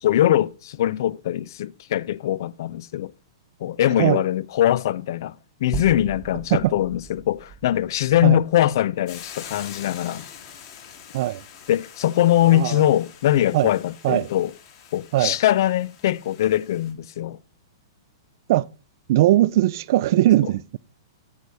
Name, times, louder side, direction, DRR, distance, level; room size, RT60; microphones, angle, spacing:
voice 1, 0.0-3.1 3.6-5.4 5.6-10.2 11.7-14.5 14.9-17.4, left 12 dB, 60° left, 0.4 m, -22 dB
sound 1, 5.7-10.0, right 8 dB, 20° right, 0.7 m, -38 dB
Hiss / Boiling, 9.1-16.9, left 8 dB, 40° left, 1.7 m, -44 dB
voice 2, 12.4-12.8 13.5-13.7 14.0-14.3 15.1-15.4 18.5-18.7 19.1-20.8, right 15 dB, 50° right, 0.3 m, -20 dB
8.2 x 3.4 x 6.2 m
hypercardioid pair, 150°, 2 cm